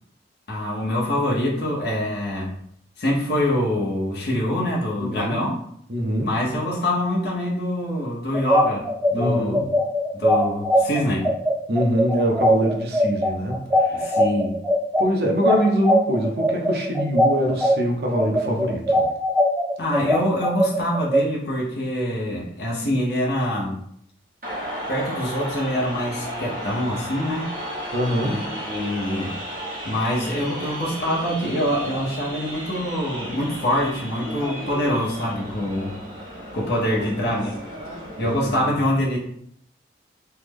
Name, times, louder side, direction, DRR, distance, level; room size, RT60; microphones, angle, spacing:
voice 1, 0.5-2.6 3.0-5.6 6.2-9.7 10.1-11.3 13.9-14.6 19.8-23.8 24.9-27.5 28.2-29.4 29.8-36.0 36.5-37.6 38.2-39.2, left 1 dB, 70° left, -4 dB, 0.7 m, -25 dB
voice 2, 5.0-5.5 5.9-6.3 9.1-9.8 11.7-14.1 15.0-19.1 27.9-28.4 36.9-37.1 38.4-38.5, equal, 65° right, 1 dB, 0.6 m, -24 dB
sound 1, 8.3-17.7 18.1-21.2, equal, 5° right, 0.8 m, -20 dB
sound 2, 24.4-38.6, equal, 50° right, 1.0 m, -34 dB
3.2 x 2.0 x 3.4 m, 0.68 s
head